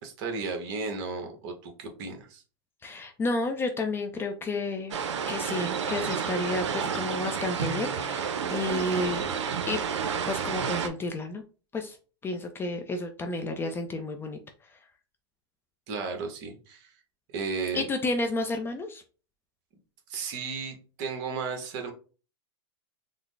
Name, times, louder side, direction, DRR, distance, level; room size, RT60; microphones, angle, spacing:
voice 1, 0.0-2.4 15.9-16.9 17.3-17.9 20.1-21.9, right 4 dB, 50° right, 4 dB, 1.0 m, -34 dB
voice 2, 2.8-5.0 5.3-9.3 9.7-9.8 10.3-11.4 11.7-12.0 12.2-14.4 17.7-19.0, left 2 dB, 15° left, 5 dB, 0.4 m, -31 dB
sound 1, 4.9-10.9, right 7 dB, 85° right, 0.5 m, -30 dB
3.7 x 2.0 x 3.2 m, 0.37 s
hypercardioid pair, 125°, 15 cm